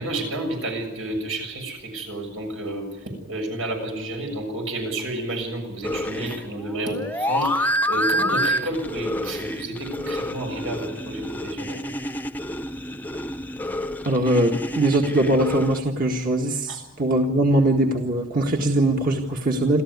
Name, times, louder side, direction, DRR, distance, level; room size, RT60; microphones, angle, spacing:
voice 1, 0.0-11.9 16.7-16.8, right 1 dB, 90° right, 4 dB, 7.1 m, -30 dB
sound 1, 5.8-15.8, equal, 10° left, 0.7 m, -28 dB
voice 2, 14.1-19.8, right 1 dB, 45° right, 2 dB, 1.7 m, -21 dB
27.5 x 13.5 x 9.6 m, 1.0 s
head